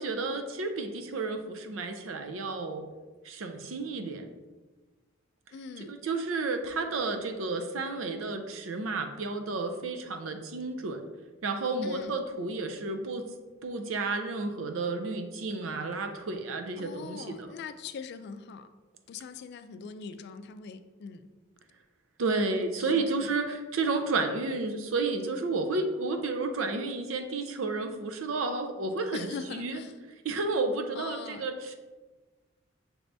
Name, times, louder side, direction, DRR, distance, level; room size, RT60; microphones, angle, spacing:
voice 1, 0.0-2.8 3.2-4.3 5.8-11.0 11.4-13.3 13.6-17.5 22.2-29.8 30.2-31.8, right 3 dB, 85° right, 6 dB, 0.5 m, -31 dB
voice 2, 5.5-5.9 11.8-12.1 16.8-18.7 19.1-21.3 22.4-23.3 29.1-29.9 31.0-31.5, left 5 dB, 55° left, 10 dB, 0.3 m, -42 dB
6.0 x 3.3 x 2.6 m, 1.3 s
head